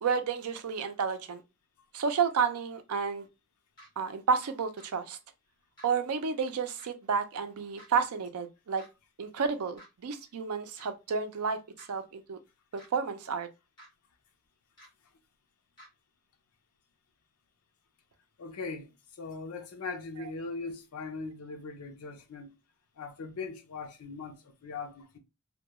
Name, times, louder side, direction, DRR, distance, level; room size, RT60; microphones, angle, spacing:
voice 1, 0.0-1.4 1.9-3.3 4.0-5.2 5.8-8.8 9.2-12.4 12.7-13.5, right 6 dB, 90° right, 0.5 m, -31 dB
sound 1, 3.8-3.9 4.8-4.9 5.8-5.9 6.8-6.9 7.8-7.9 8.8-8.9 9.8-9.9 10.8-10.9 11.8-11.9 12.8-12.9 13.8-13.9 14.8-14.9 15.8-15.9, equal, 20° left, 1.3 m, -53 dB
voice 2, 18.4-18.9 19.2-22.5 23.0-25.2, left 4 dB, 85° left, 0.6 m, -40 dB
2.2 x 2.2 x 2.8 m
head